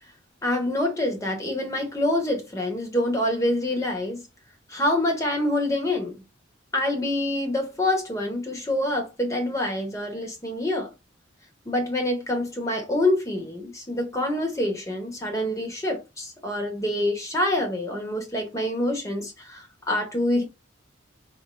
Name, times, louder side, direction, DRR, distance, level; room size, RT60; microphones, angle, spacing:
voice 1, 0.4-4.2 4.7-6.2 6.7-10.9 11.7-20.4, left 1 dB, 15° left, 1.0 m, -26 dB
4.2 x 2.8 x 2.3 m
head